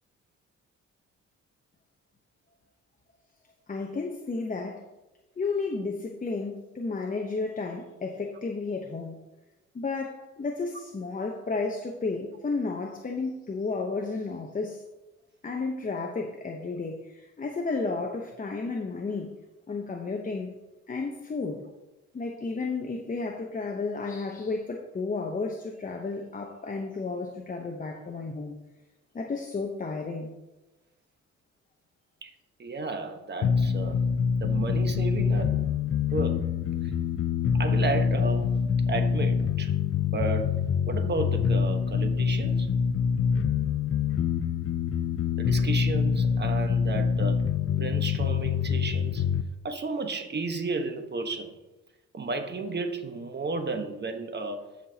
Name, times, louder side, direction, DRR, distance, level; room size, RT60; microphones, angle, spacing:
voice 1, 3.7-4.8 5.4-9.2 9.7-14.8 15.4-19.3 19.7-20.5 20.9-21.6 22.1-28.6 29.1-30.3, left 3 dB, 25° left, 2 dB, 0.9 m, -32 dB
voice 2, 32.6-34.0 34.4-35.6 36.1-36.4 37.6-38.5 38.9-39.7 40.0-40.5 40.9-42.7 45.4-47.4 47.8-49.2 49.6-51.5 52.1-54.6, right 3 dB, 35° right, 6 dB, 1.3 m, -32 dB
sound 1, 33.4-49.4, left 6 dB, 45° left, 0.5 m, -25 dB
15.0 x 5.7 x 2.9 m, 1.0 s
cardioid pair, 90°, 30 cm